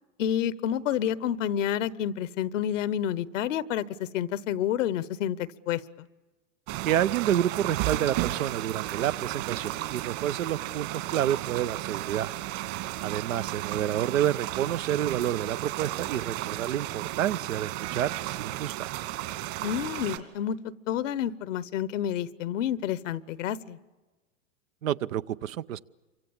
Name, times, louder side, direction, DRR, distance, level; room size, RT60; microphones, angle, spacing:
voice 1, 0.2-3.8 4.1-6.1 19.6-20.6 20.9-23.8, left 10 dB, 70° left, 18 dB, 1.0 m, -29 dB
sound 1, 6.7-20.2, right 16 dB, 55° right, 2.4 m, -34 dB
voice 2, 6.8-12.3 13.0-18.9 24.8-25.8, right 11 dB, 80° right, 14 dB, 0.8 m, -29 dB
28.0 x 24.5 x 7.2 m, 1.2 s
hypercardioid pair, 105°, 39 cm